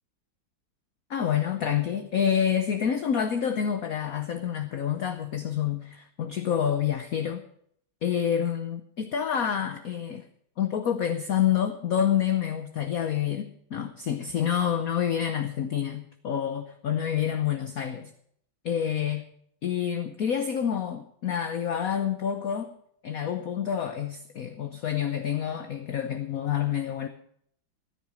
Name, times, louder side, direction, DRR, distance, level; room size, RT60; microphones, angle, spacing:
voice 1, 1.1-7.5 8.0-10.3 10.6-18.1 18.6-19.2 19.6-22.7 23.0-27.1, left 9 dB, 55° left, 8 dB, 1.1 m, -28 dB
14.5 x 10.5 x 6.4 m, 0.67 s
omnidirectional pair, 2.2 m